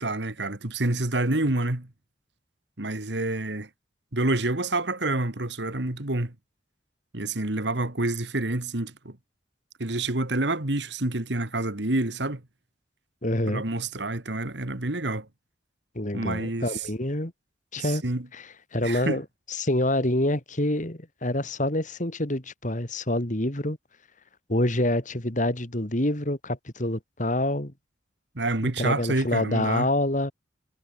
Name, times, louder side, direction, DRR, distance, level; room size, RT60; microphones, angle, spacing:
voice 1, 0.0-1.9 2.8-3.7 4.1-6.3 7.1-9.2 9.8-12.4 13.5-15.3 16.1-16.9 17.8-18.3 18.8-19.2 28.4-29.9, right 2 dB, 65° right, 2.2 m, -28 dB
voice 2, 13.2-13.6 15.9-17.3 17.7-18.0 18.3-23.8 24.5-27.7 28.6-30.3, left 1 dB, 40° left, 3.2 m, -27 dB
head